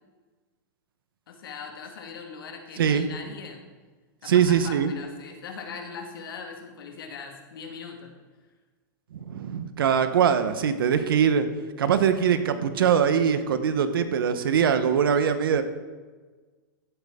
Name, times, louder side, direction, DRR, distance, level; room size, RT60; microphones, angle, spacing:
voice 1, 1.3-3.7 4.2-8.1, left 5 dB, 80° left, 3 dB, 2.0 m, -40 dB
voice 2, 2.8-3.1 4.3-4.9 9.1-11.5 11.8-15.6, right 8 dB, 85° right, 10 dB, 1.1 m, -22 dB
15.5 x 8.0 x 3.7 m, 1.4 s
hypercardioid pair, 140°, 12 cm